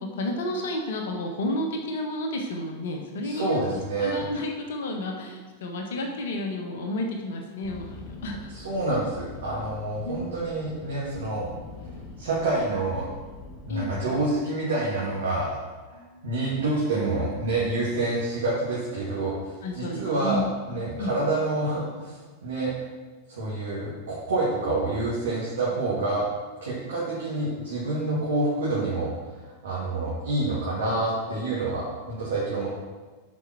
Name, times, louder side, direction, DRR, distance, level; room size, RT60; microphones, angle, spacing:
voice 1, 0.0-8.5 10.0-10.5 13.7-13.9 15.9-16.4 19.6-20.5 21.0-21.1, left 1 dB, 60° left, 2 dB, 1.3 m, -31 dB
voice 2, 3.2-4.2 8.5-11.5 12.2-13.1 13.7-15.5 16.2-22.7 23.4-26.2 26.6-29.1 29.4-32.7, right 2 dB, 65° right, -8 dB, 2.4 m, -27 dB
sound 1, 7.6-14.4, left 3 dB, 30° left, 1.3 m, -44 dB
7.9 x 5.4 x 6.0 m, 1.3 s
figure-of-eight pair, 90°, 0 cm